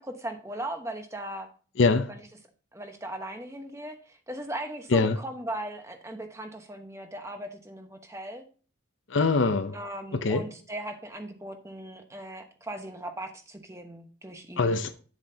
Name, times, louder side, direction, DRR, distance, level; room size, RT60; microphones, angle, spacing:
voice 1, 0.0-1.5 2.1-2.2 2.7-8.4 9.7-14.8, right 1 dB, 15° right, 1.1 m, -38 dB
voice 2, 1.8-2.1 4.9-5.2 9.1-9.8 10.1-10.5 14.6-15.0, left 3 dB, 70° left, 0.7 m, -24 dB
9.7 x 7.3 x 2.8 m
head